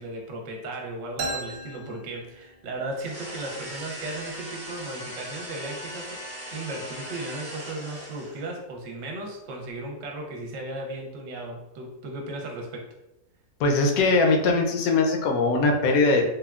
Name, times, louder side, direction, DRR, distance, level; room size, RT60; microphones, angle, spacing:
voice 1, 0.0-6.2 6.5-12.9, right 2 dB, 70° right, 1 dB, 0.9 m, -36 dB
sound 1, 1.2-2.9, right 2 dB, 90° right, 0.4 m, -35 dB
sound 2, 2.9-8.5, equal, 40° right, 1.0 m, -39 dB
voice 2, 13.6-16.2, left 3 dB, 85° left, 2 dB, 1.1 m, -21 dB
3.4 x 2.2 x 2.3 m, 0.93 s
omnidirectional pair, 1.5 m